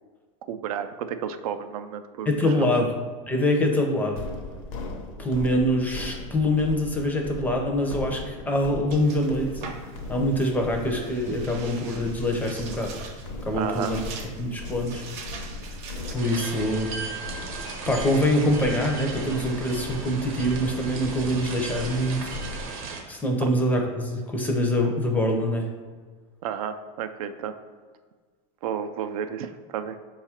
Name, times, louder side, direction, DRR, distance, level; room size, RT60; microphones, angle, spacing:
voice 1, 0.5-2.3 2.6-2.7 13.5-14.0 23.4-23.5 26.4-27.5 28.6-30.0, right 8 dB, 90° right, 9 dB, 0.4 m, -32 dB
voice 2, 2.3-2.9 3.3-4.2 5.2-9.6 10.1-12.9 13.4-14.0 14.4-15.0 16.1-16.9 17.9-22.4 23.1-25.7, left 1 dB, 10° left, 1 dB, 0.4 m, -24 dB
sound 1, 4.2-22.7, left 2 dB, 70° left, 0.7 m, -38 dB
sound 2, 8.9-16.2, right 4 dB, 40° right, 0.6 m, -42 dB
sound 3, 16.2-23.0, right 4 dB, 70° right, 0.8 m, -36 dB
4.8 x 2.4 x 4.2 m, 1.5 s
supercardioid pair, 150°, 18 cm